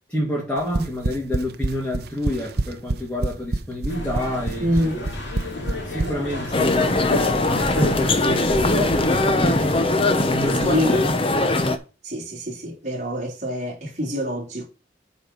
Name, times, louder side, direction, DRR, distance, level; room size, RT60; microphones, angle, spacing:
voice 1, 0.1-4.7 5.8-11.1, left 1 dB, 5° left, 2.6 m, -28 dB
sound 1, 0.6-6.1, right 2 dB, 60° right, 0.7 m, -25 dB
sound 2, 3.9-9.9, left 1 dB, 90° left, 2.4 m, -32 dB
voice 2, 4.6-5.0 10.6-11.0 12.0-14.7, equal, 40° right, 3.9 m, -26 dB
sound 3, 6.5-11.8, left 2 dB, 30° left, 0.9 m, -20 dB
8.3 x 4.4 x 5.7 m
head